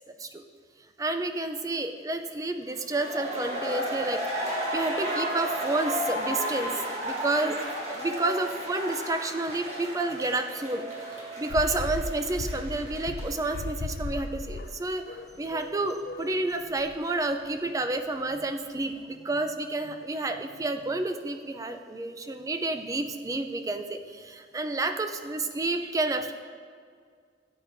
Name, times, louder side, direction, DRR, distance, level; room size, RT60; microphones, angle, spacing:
voice 1, 1.0-7.6 7.9-15.0 15.4-26.3, right 2 dB, 20° right, 7 dB, 0.4 m, -30 dB
sound 1, 2.7-13.6 13.9-14.0, equal, 35° right, 1.5 m, -33 dB
sound 2, 11.5-16.4 16.8-17.0, left 2 dB, 55° left, 0.5 m, -36 dB
12.5 x 7.8 x 2.6 m, 2.1 s
head